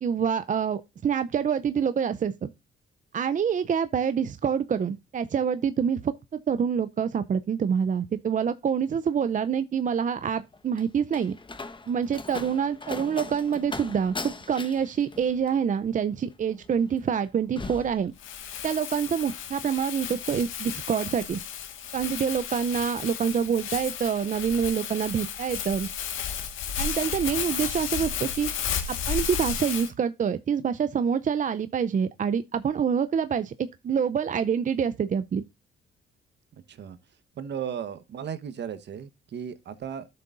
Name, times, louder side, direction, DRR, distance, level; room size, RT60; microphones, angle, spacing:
voice 1, 0.0-2.5 3.1-6.1 6.5-11.4 11.9-18.1 18.6-21.4 21.9-25.9 26.8-28.5 28.9-35.4, right 7 dB, 40° right, 0.6 m, -26 dB
Slam, 10.3-18.7 19.0-19.5, left 3 dB, 25° left, 1.3 m, -40 dB
Crumpling crinkling, 18.2-29.9, left 8 dB, 85° left, 1.8 m, -33 dB
voice 2, 37.4-40.1, right 8 dB, 60° right, 1.2 m, -35 dB
12.0 x 6.8 x 2.6 m
cardioid pair, 90°, 20 cm